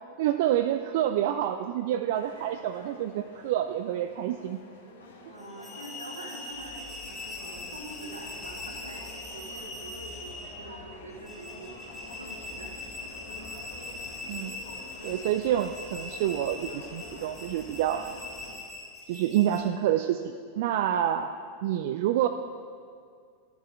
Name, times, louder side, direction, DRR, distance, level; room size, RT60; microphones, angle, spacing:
voice 1, 0.2-4.6 14.3-14.5 15.0-18.1 19.1-22.3, right 11 dB, 50° right, 8 dB, 0.4 m, -28 dB
sound 1, 2.1-18.6, left 2 dB, 65° left, 1.7 m, -48 dB
voice 2, 5.3-6.8 7.1-13.2, right 2 dB, 75° right, 2 dB, 1.5 m, -45 dB
sound 2, 5.4-19.6, left 2 dB, ahead, 2.1 m, -42 dB
sound 3, 6.5-18.6, left 2 dB, 30° left, 2.5 m, -52 dB
13.0 x 7.1 x 4.8 m, 2.2 s
figure-of-eight pair, 90°, 0 cm